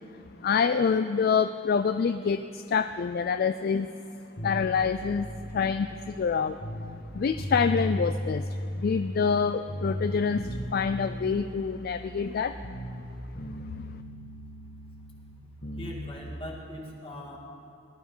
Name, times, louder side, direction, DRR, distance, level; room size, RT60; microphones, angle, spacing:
voice 1, 0.4-3.9 4.4-5.3 5.5-6.6 7.1-12.6, left 6 dB, 50° left, 10 dB, 0.3 m, -26 dB
sound 1, 4.4-7.0 7.4-9.4 9.7-13.1 13.4-16.0, equal, 65° left, 1.8 m, -36 dB
voice 2, 15.8-17.4, left 1 dB, 30° left, -1 dB, 2.1 m, -40 dB
19.0 x 11.5 x 5.5 m, 2.8 s
head